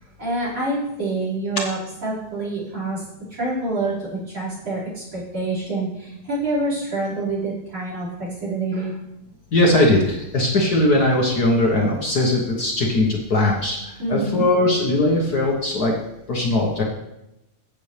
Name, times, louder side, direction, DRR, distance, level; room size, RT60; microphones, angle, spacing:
voice 1, 0.2-3.0 3.4-8.1 8.4-9.0 14.0-14.4, right 2 dB, 35° right, -6 dB, 5.9 m, -26 dB
voice 2, 9.5-13.8 14.1-15.9 16.3-16.8, left 1 dB, 80° left, -1 dB, 0.8 m, -19 dB
16.0 x 8.6 x 3.4 m, 0.89 s
omnidirectional pair, 3.9 m